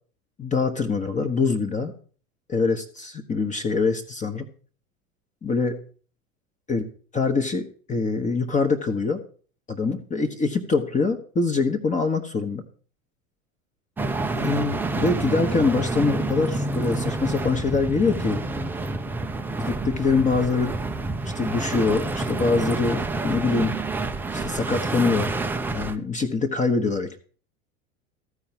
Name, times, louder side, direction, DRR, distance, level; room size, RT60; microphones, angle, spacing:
voice 1, 0.4-1.9 2.5-4.5 5.4-5.8 6.7-6.9 7.1-9.2 9.7-12.6 14.4-18.4 19.6-20.8 21.3-23.8 24.3-25.3 25.7-27.2, left 4 dB, 15° left, 6 dB, 1.0 m, -24 dB
sound 1, 14.0-26.0, right 2 dB, 5° right, 0.4 m, -28 dB
14.0 x 4.8 x 6.8 m, 0.43 s
figure-of-eight pair, 80°, 42 cm